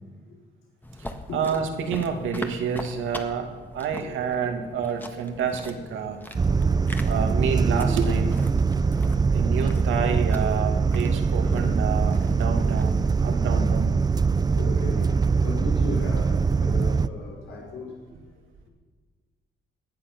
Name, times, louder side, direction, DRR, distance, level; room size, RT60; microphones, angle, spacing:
sound 1, 0.8-13.4, left 1 dB, 10° left, 1.5 m, -41 dB
voice 1, 1.0-6.2 7.1-8.4 9.3-14.0, right 6 dB, 85° right, 4 dB, 2.1 m, -29 dB
sound 2, 6.3-17.1, right 5 dB, 20° right, 0.5 m, -22 dB
voice 2, 6.4-7.1 11.5-11.7 14.5-18.2, left 3 dB, 85° left, -3 dB, 4.8 m, -37 dB
19.0 x 11.0 x 6.0 m, 1.5 s
cardioid pair, 90°, 20 cm